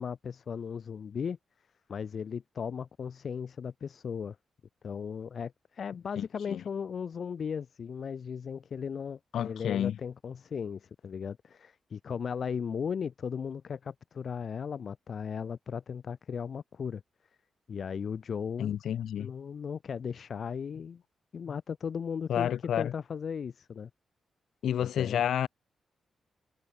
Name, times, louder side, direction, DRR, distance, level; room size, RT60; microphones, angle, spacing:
voice 1, 0.0-1.4 1.9-4.4 4.8-17.0 17.7-18.7 19.2-21.0 21.3-22.5 22.8-23.9 24.8-25.2, left 6 dB, 45° left, 3.5 m, -36 dB
voice 2, 6.2-6.6 9.3-10.0 18.6-19.3 22.3-22.9 24.6-25.5, left 10 dB, 80° left, 5.6 m, -30 dB
wide cardioid pair, 170°, 0 cm